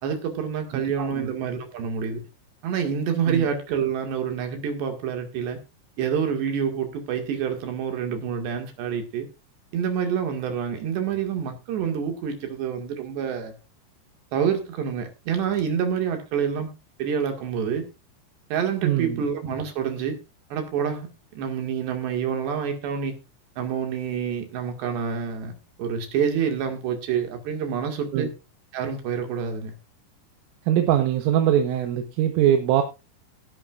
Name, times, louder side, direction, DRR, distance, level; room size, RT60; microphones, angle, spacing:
voice 1, 0.0-2.3 2.6-5.6 6.0-9.3 9.7-13.5 14.3-16.7 17.0-17.9 18.5-20.2 20.5-21.1 21.4-23.2 23.6-28.3 28.7-29.7, right 7 dB, 60° right, 3.9 m, -27 dB
voice 2, 0.7-1.3 3.3-3.5 18.8-19.2 28.1-28.3 30.7-32.8, right 11 dB, 80° right, 3.7 m, -22 dB
18.5 x 11.0 x 2.5 m
omnidirectional pair, 5.9 m